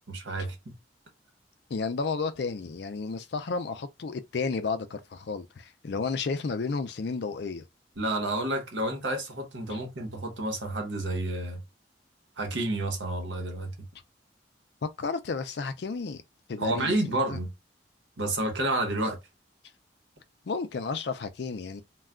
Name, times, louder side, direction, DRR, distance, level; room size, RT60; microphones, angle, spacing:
voice 1, 0.1-0.7 8.0-11.6 12.4-13.9 16.6-17.5 18.2-19.2, right 1 dB, 85° right, 1.0 m, -30 dB
voice 2, 1.7-7.6 14.8-16.2 16.5-17.4 20.5-21.8, left 4 dB, 65° left, 0.4 m, -32 dB
2.3 x 2.2 x 3.5 m
head